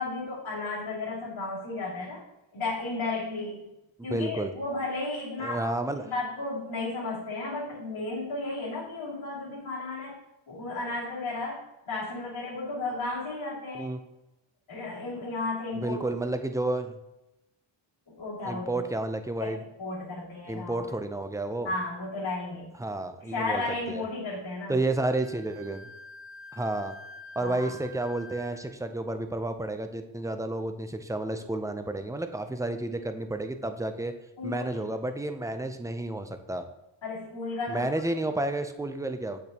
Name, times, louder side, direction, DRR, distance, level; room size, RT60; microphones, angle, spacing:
voice 1, 0.0-2.2 2.5-3.7 4.0-5.7 6.0-10.2 10.5-13.9 14.7-16.1 18.1-18.8 19.4-20.8 21.6-22.7 23.2-24.8 27.4-27.7 34.4-34.9 37.0-37.8, left 3 dB, 80° left, -8 dB, 2.8 m, -34 dB
voice 2, 4.1-4.5 5.4-6.1 13.7-14.0 15.7-17.0 18.4-19.6 20.5-21.7 22.8-24.0 24.7-25.9 26.5-27.0 27.4-34.1 34.4-36.6 37.7-39.4, right 2 dB, 5° right, 8 dB, 0.4 m, -31 dB
Wind instrument woodwind instrument, 25.0-28.7, left 1 dB, 70° right, 0.9 m, -47 dB
8.1 x 6.7 x 2.9 m, 0.93 s
wide cardioid pair, 130°, 47 cm